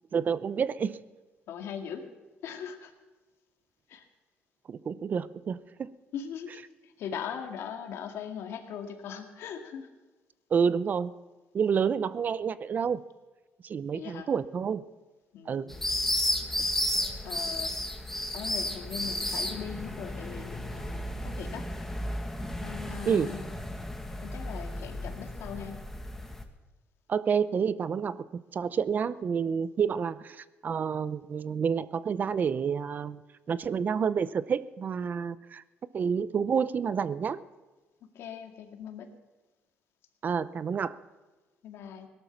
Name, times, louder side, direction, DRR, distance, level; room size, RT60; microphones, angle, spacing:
voice 1, 0.1-1.0 4.7-5.9 10.5-11.1 11.5-13.0 13.6-14.8 15.5-15.7 23.1-23.3 27.1-33.2 33.5-35.6 35.9-37.4 40.2-41.0, right 6 dB, 40° right, 16 dB, 0.6 m, -29 dB
voice 2, 1.5-2.1 2.4-2.9 3.9-4.1 6.1-9.9 13.9-14.3 15.3-15.9 17.2-17.7 18.3-21.7 22.6-23.4 24.2-25.9 38.1-39.1 41.6-42.1, left 8 dB, 75° left, 5 dB, 2.1 m, -40 dB
sound 1, 15.7-26.4, left 1 dB, 5° left, 1.6 m, -33 dB
18.0 x 12.0 x 5.9 m, 1.2 s
cardioid pair, 110°, 4 cm